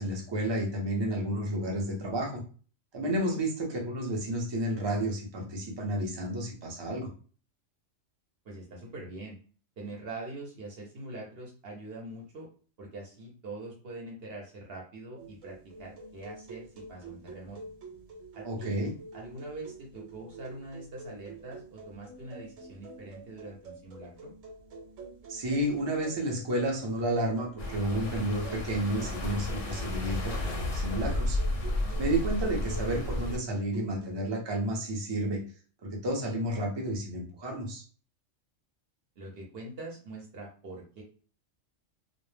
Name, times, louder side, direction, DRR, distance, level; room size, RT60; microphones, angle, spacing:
voice 1, 0.0-2.4 2.9-7.1 18.4-18.9 25.3-31.4 32.0-35.4 35.8-37.8, right 1 dB, 35° right, 0 dB, 0.4 m, -31 dB
voice 2, 3.0-3.4 8.4-9.4 9.8-12.5 12.8-17.6 18.3-18.8 19.1-24.3 31.8-32.2 39.2-41.0, right 2 dB, 60° right, -1 dB, 0.8 m, -43 dB
sound 1, 15.2-34.3, right 3 dB, 85° right, 1.1 m, -48 dB
sound 2, 27.6-33.4, left 1 dB, 55° left, 0.6 m, -32 dB
2.2 x 2.0 x 3.1 m, 0.40 s
omnidirectional pair, 1.3 m